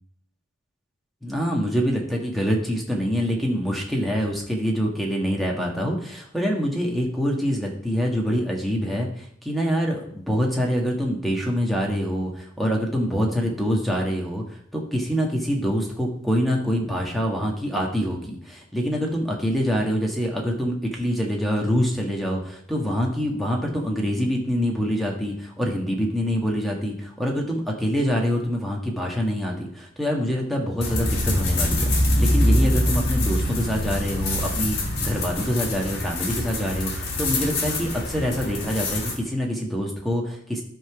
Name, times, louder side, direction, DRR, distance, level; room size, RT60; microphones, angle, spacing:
voice 1, 1.2-31.9 32.2-40.6, equal, ahead, -1 dB, 1.6 m, -25 dB
sound 1, 30.8-39.1, left 1 dB, 55° left, 2.0 m, -24 dB
11.5 x 3.9 x 6.0 m, 0.66 s
head